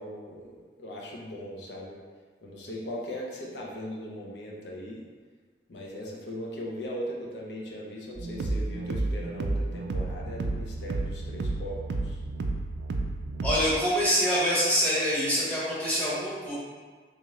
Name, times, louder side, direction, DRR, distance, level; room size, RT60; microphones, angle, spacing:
voice 1, 0.0-2.0 2.4-5.0 5.7-11.8 12.0-12.2, equal, 80° left, -2 dB, 0.6 m, -39 dB
sound 1, 8.2-13.8, right 2 dB, 85° right, 0.3 m, -31 dB
voice 2, 13.4-16.5, equal, 10° left, -9 dB, 0.8 m, -25 dB
3.5 x 2.9 x 3.1 m, 1.5 s
head